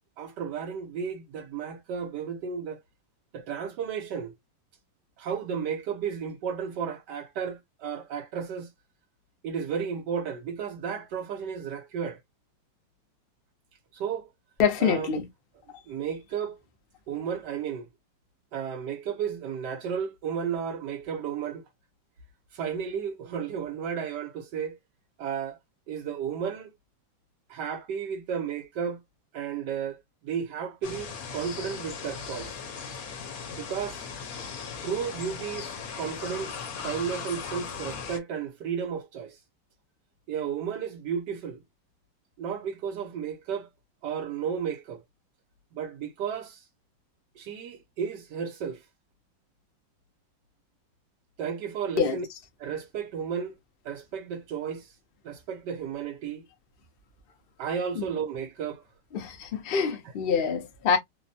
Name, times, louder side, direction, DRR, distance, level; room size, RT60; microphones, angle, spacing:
voice 1, 0.2-2.8 3.3-4.3 5.2-8.7 9.4-12.2 13.9-14.3 14.8-15.1 15.9-16.6 17.1-17.9 18.5-21.6 22.5-24.8 25.2-25.6 25.9-26.7 27.5-29.0 29.3-32.6 33.6-34.1 34.8-39.4 40.3-41.6 42.4-43.7 44.0-45.0 45.7-46.6 47.4-48.8 51.4-52.2 52.6-53.6 53.8-54.9 55.2-56.4 57.6-58.8 60.0-60.1, right 7 dB, 70° right, 1.1 m, -33 dB
voice 2, 14.6-15.2 52.0-52.2 58.0-58.1 59.1-61.0, left 6 dB, 80° left, 0.5 m, -25 dB
sound 1, 30.8-38.2, left 6 dB, 60° left, 1.0 m, -38 dB
3.2 x 2.0 x 2.6 m
omnidirectional pair, 2.1 m